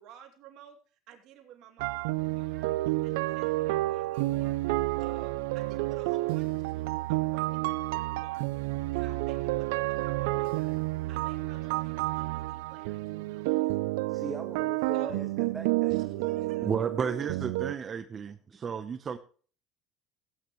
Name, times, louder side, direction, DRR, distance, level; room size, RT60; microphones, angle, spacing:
voice 1, 0.0-2.7 3.0-4.6 5.0-8.5 8.9-10.8 11.1-13.8 14.9-15.3 15.9-16.8, right 9 dB, 60° right, 3 dB, 2.7 m, -52 dB
sound 1, 1.8-17.7, right 20 dB, 85° right, 0.4 m, -30 dB
voice 2, 14.1-16.0 17.9-18.0 18.5-18.6, right 3 dB, 20° right, 5 dB, 1.4 m, -41 dB
voice 3, 16.6-19.2, right 6 dB, 35° right, 11 dB, 0.8 m, -32 dB
16.5 x 9.2 x 3.1 m, 0.41 s
supercardioid pair, 100°, 0 cm